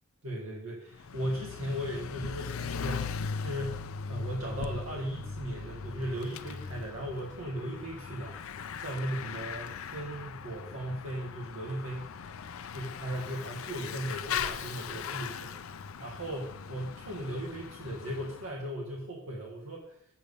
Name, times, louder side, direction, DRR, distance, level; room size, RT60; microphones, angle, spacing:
voice 1, 0.2-8.4 8.8-12.2 12.7-20.0, right 1 dB, 80° right, -3 dB, 1.6 m, -37 dB
Bicycle / Mechanisms, 0.9-18.5, left 6 dB, 85° left, 0.5 m, -39 dB
7.4 x 5.2 x 6.9 m, 0.71 s
head